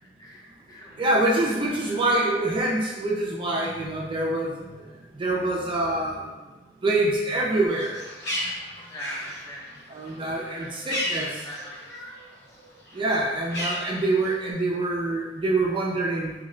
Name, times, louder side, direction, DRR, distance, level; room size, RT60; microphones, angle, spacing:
voice 1, 0.2-1.1 1.8-2.1 8.9-9.9 10.3-12.1 13.0-13.3, equal, 20° left, -4 dB, 0.6 m, -43 dB
voice 2, 1.0-6.3 6.8-8.0 8.4-8.5 9.9-11.3 12.9-16.3, right 2 dB, 30° right, -3 dB, 0.3 m, -25 dB
Bird, 7.7-12.3 12.6-14.5, left 1 dB, 65° left, 1.0 m, -34 dB
3.1 x 2.1 x 3.7 m, 1.2 s
head